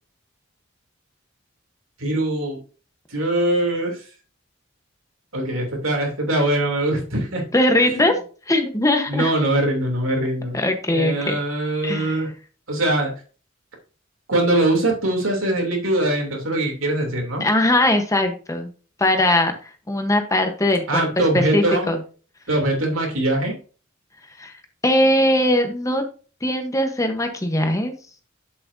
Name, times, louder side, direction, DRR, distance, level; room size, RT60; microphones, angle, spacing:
voice 1, 2.0-2.6 3.1-4.0 5.3-7.4 7.8-8.1 9.1-10.6 10.9-12.3 12.7-13.1 14.3-17.4 20.9-21.9 22.5-23.6, right 1 dB, 80° right, 1 dB, 3.0 m, -22 dB
voice 2, 7.5-8.1 8.5-9.3 10.5-11.4 11.8-12.2 17.4-18.7 19.0-19.5 19.9-21.1 21.3-22.0 24.4-24.5 24.8-26.0 26.4-27.9, left 1 dB, 15° left, 6 dB, 1.0 m, -20 dB
8.5 x 7.5 x 2.7 m, 0.37 s
head